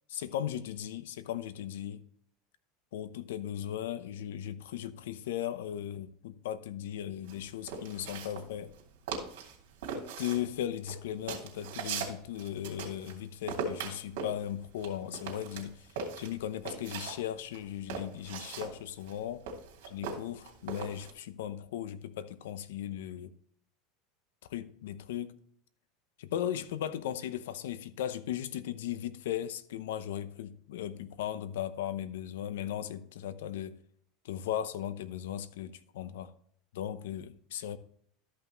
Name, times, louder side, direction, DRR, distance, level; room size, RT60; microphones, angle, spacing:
voice 1, 0.1-2.0 2.9-8.7 9.9-15.9 16.2-19.5 19.8-23.3 24.5-25.3 26.2-33.8 34.2-36.3 36.7-37.8, left 11 dB, 90° left, 0.7 m, -37 dB
sound 1, 7.3-8.8 9.1-9.6 9.8-13.2 13.5-17.2 17.5-21.1, right 5 dB, 80° right, 2.8 m, -39 dB
13.0 x 5.7 x 3.1 m
supercardioid pair, 140°, 0 cm